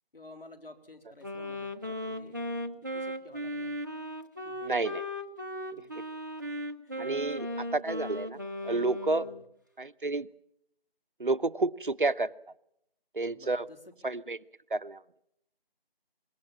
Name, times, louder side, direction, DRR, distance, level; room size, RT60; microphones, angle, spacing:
voice 1, 0.1-2.4 2.9-3.9 4.4-4.6 5.7-6.0 6.2-6.3 6.8-7.2 9.1-9.4 13.3-13.9, left 2 dB, 65° left, 6 dB, 3.8 m, -52 dB
Wind instrument woodwind instrument, 1.2-9.4, left 1 dB, 20° right, 0.8 m, -37 dB
voice 2, 4.6-5.0 5.7-6.0 7.0-7.5 7.7-9.2 9.8-10.3 11.2-12.3 13.1-13.6 14.0-14.4 14.7-15.0, right 3 dB, 55° right, 14 dB, 0.8 m, -30 dB
25.0 x 21.5 x 7.4 m, 0.77 s
figure-of-eight pair, 165°, 30 cm